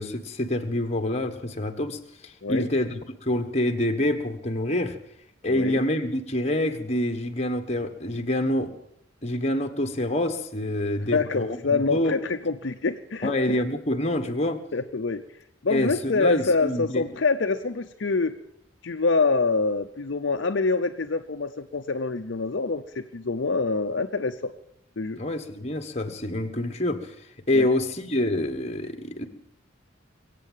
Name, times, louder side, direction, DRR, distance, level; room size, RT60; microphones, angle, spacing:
voice 1, 0.0-5.0 5.4-8.7 9.2-12.1 13.2-14.6 15.7-17.0 25.2-27.1 27.5-29.2, left 1 dB, 30° left, 5 dB, 1.3 m, -27 dB
voice 2, 5.5-5.8 11.1-13.3 14.7-18.3 18.8-24.5 25.0-25.2 27.5-27.7, left 3 dB, 60° left, 6 dB, 0.7 m, -26 dB
22.5 x 8.5 x 7.3 m, 0.77 s
head